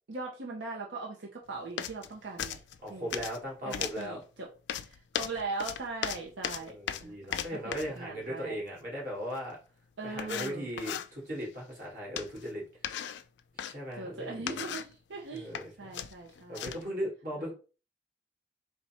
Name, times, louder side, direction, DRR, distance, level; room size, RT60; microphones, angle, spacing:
voice 1, 0.1-2.6 2.9-3.2 3.7-4.5 4.8-8.6 10.0-10.7 13.9-16.8 17.4-17.5, right 3 dB, 85° right, -1 dB, 0.8 m, -40 dB
sound 1, 1.8-2.1 2.4-3.4 3.7-4.1 4.7-8.0 9.5-9.6 10.2-11.1 12.2-12.5 12.8-13.7 14.3-15.0 15.4-15.7 15.9-16.9, left 9 dB, 75° left, 0.4 m, -37 dB
voice 2, 2.8-4.2 6.6-9.6 10.0-12.6 13.6-14.6 15.3-15.7 16.5-17.5, equal, 50° right, -3 dB, 2.1 m, -38 dB
4.2 x 2.3 x 4.2 m, 0.35 s
head